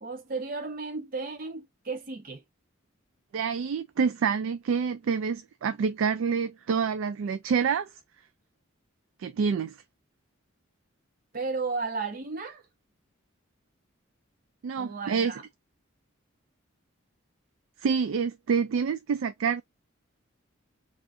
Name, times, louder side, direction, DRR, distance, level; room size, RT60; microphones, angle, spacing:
voice 1, 0.0-2.4 11.3-12.6 14.8-15.4, right 4 dB, 45° right, 0.7 m, -34 dB
voice 2, 3.3-7.9 9.2-9.7 14.6-15.3 17.8-19.6, right 6 dB, 75° right, 0.3 m, -27 dB
3.7 x 2.5 x 2.4 m
head